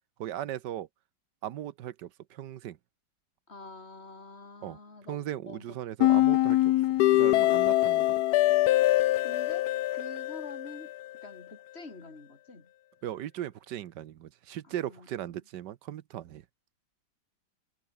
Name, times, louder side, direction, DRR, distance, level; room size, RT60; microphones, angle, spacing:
voice 1, 0.2-0.9 1.4-2.8 4.6-4.8 5.1-6.7 7.1-8.2 13.0-16.4, right 12 dB, 75° right, 1.4 m, -38 dB
voice 2, 3.5-5.8 9.2-10.9 11.2-12.7 14.6-15.4, left 3 dB, 35° left, 3.1 m, -47 dB
sound 1, 6.0-11.0, left 15 dB, 70° left, 1.1 m, -24 dB
omnidirectional pair, 1.9 m